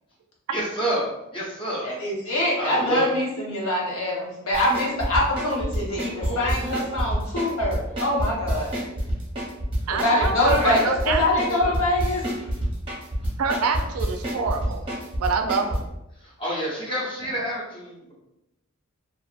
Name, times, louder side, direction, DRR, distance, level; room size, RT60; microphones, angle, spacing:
voice 1, 0.5-1.9 2.6-3.1 6.1-6.8 10.6-10.8 16.4-18.1, right 1 dB, 25° left, -5 dB, 0.8 m, -29 dB
voice 2, 1.8-8.7 9.9-10.8 11.1-12.2, left 1 dB, 90° left, -4 dB, 0.9 m, -24 dB
sound 1, 4.5-15.8, equal, 25° right, 0.8 m, -27 dB
voice 3, 9.9-11.6 13.4-14.8 15.2-15.8, right 5 dB, 85° right, 6 dB, 0.4 m, -26 dB
2.6 x 2.4 x 2.4 m, 0.90 s
head